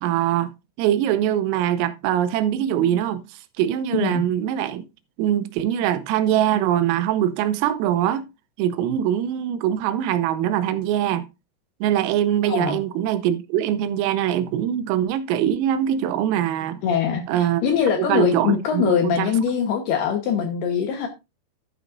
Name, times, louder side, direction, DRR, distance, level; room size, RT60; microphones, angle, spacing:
voice 1, 0.0-4.8 5.2-8.2 8.6-11.3 11.8-16.8 17.3-17.6 18.0-19.3, right 11 dB, 85° right, 3.5 m, -23 dB
voice 2, 3.9-4.2 12.5-12.8 16.8-21.1, left 7 dB, 70° left, 2.6 m, -22 dB
12.0 x 9.4 x 2.6 m
omnidirectional pair, 5.9 m